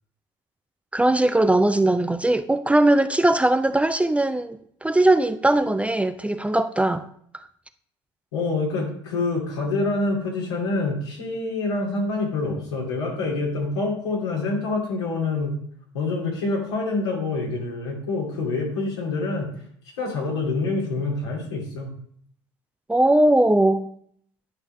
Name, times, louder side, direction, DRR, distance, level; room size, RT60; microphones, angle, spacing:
voice 1, 0.9-7.0 7.3-7.4 22.9-23.9, right 1 dB, 10° right, 0.5 m, -20 dB
voice 2, 8.3-15.5 15.9-19.5 20.0-21.9, left 3 dB, 85° left, 2.6 m, -26 dB
10.5 x 5.5 x 3.3 m
hypercardioid pair, 75°, 14 cm